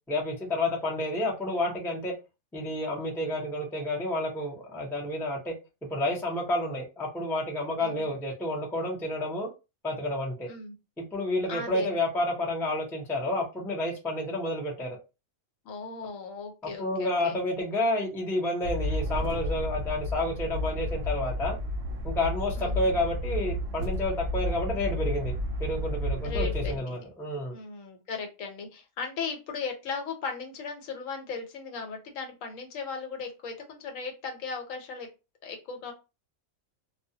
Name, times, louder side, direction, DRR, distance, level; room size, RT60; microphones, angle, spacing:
voice 1, 0.1-2.1 2.5-5.5 5.9-9.5 9.8-10.5 11.1-15.0 16.6-21.6 22.0-27.6, left 1 dB, 5° left, -2 dB, 0.3 m, -30 dB
voice 2, 11.5-11.9 15.6-17.4 22.5-22.8 26.2-27.0 27.5-35.1 35.4-35.9, left 4 dB, 75° left, 4 dB, 1.0 m, -37 dB
sound 1, 18.6-26.8, left 1 dB, 65° right, 0.7 m, -31 dB
2.3 x 2.0 x 2.7 m, 0.28 s
omnidirectional pair, 1.4 m